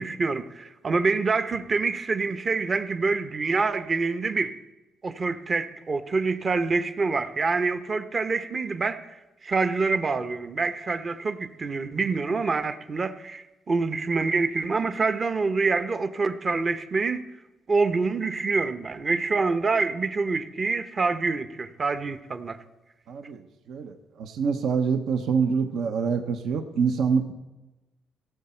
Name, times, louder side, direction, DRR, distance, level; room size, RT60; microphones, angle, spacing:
voice 1, 0.0-4.6 5.0-9.0 9.4-17.2 17.7-22.6, right 4 dB, 35° right, 0.8 m, -26 dB
voice 2, 23.1-23.4 23.7-27.3, right 6 dB, 75° right, 0.8 m, -26 dB
17.0 x 7.1 x 4.4 m
cardioid pair, 90°, 0 cm